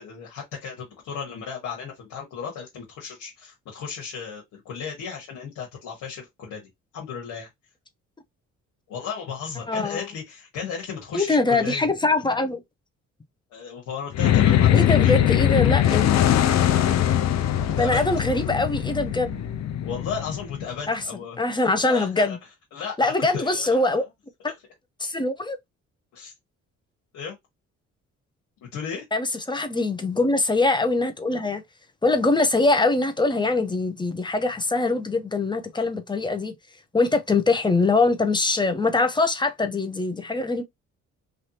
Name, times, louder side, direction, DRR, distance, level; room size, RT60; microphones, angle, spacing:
voice 1, 0.0-6.6 6.9-7.5 8.9-11.8 13.5-15.2 17.6-18.1 19.8-21.4 21.8-22.4 22.7-24.1 24.4-24.5 26.1-26.3 27.1-27.4 28.7-29.0 35.7-35.9, left 6 dB, 85° left, 1.3 m, -35 dB
voice 2, 9.7-10.1 11.1-12.6 14.7-16.1 17.7-19.3 20.9-21.0 21.4-22.4 23.0-24.0 25.0-25.6 29.1-31.6 32.0-36.5 36.9-40.6, left 3 dB, 15° left, 0.7 m, -23 dB
sound 1, 14.1-20.7, left 11 dB, 65° left, 0.6 m, -21 dB
3.2 x 2.6 x 2.8 m
cardioid pair, 90°, 30 cm